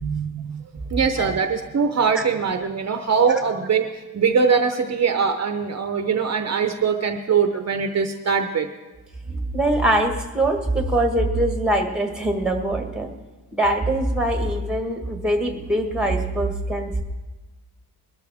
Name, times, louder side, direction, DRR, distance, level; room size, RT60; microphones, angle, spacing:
voice 1, 0.0-8.7, right 6 dB, 45° right, 6 dB, 0.7 m, -22 dB
voice 2, 9.5-13.1 13.5-17.0, right 1 dB, ahead, 4 dB, 1.4 m, -22 dB
22.0 x 13.0 x 3.5 m, 1.2 s
wide cardioid pair, 155°, 39 cm